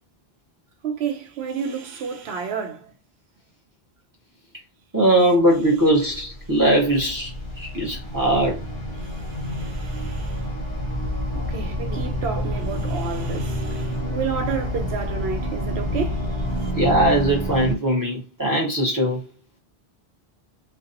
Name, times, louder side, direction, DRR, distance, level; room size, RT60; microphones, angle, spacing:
voice 1, 0.8-2.9 9.3-10.4 11.3-16.7, right 6 dB, 80° right, 0.8 m, -31 dB
voice 2, 4.9-7.3 7.6-8.6 16.8-19.2, right 1 dB, 20° right, 0.8 m, -20 dB
sound 1, 5.6-17.8, equal, 55° left, 0.7 m, -28 dB
2.6 x 2.2 x 2.5 m
omnidirectional pair, 1.1 m